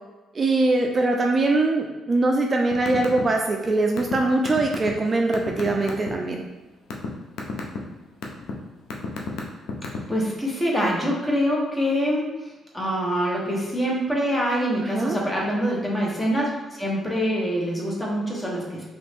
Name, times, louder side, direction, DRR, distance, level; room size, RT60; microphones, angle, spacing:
voice 1, 0.3-6.4 14.8-15.2, right 2 dB, 35° right, 2 dB, 0.3 m, -22 dB
sound 1, 2.7-3.2 3.5-6.1 6.6-7.1 7.4-7.8 8.2-8.5 8.9-10.2, left 5 dB, 80° left, 0.5 m, -30 dB
voice 2, 10.1-12.3 12.7-16.5 16.8-18.8, equal, 15° left, -3 dB, 1.0 m, -25 dB
3.1 x 2.5 x 3.4 m, 1.1 s
cardioid pair, 90°, 0 cm